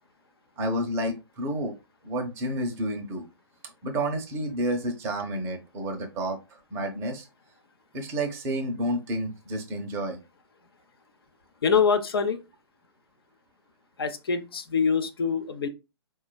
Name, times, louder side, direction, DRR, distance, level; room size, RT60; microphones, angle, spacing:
voice 1, 0.6-1.8 2.0-3.2 3.8-7.3 7.9-10.2, right 1 dB, 15° right, 0.6 m, -30 dB
voice 2, 11.6-12.4 14.0-15.7, left 6 dB, 55° left, 0.6 m, -24 dB
4.2 x 2.2 x 2.3 m
figure-of-eight pair, 125°, 15 cm